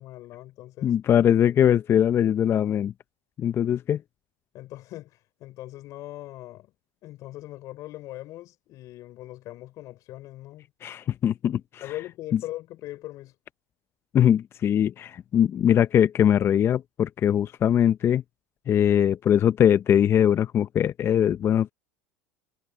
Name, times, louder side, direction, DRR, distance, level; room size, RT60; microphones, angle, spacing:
voice 1, 0.0-1.0 4.5-6.7 7.0-10.7 11.8-13.3, left 16 dB, 55° left, 4.3 m, -40 dB
voice 2, 0.8-2.9 3.4-4.0 10.8-11.9 12.3-12.4 14.1-18.2 18.7-21.7, left 9 dB, 35° left, 0.6 m, -21 dB
supercardioid pair, 105°, 7 cm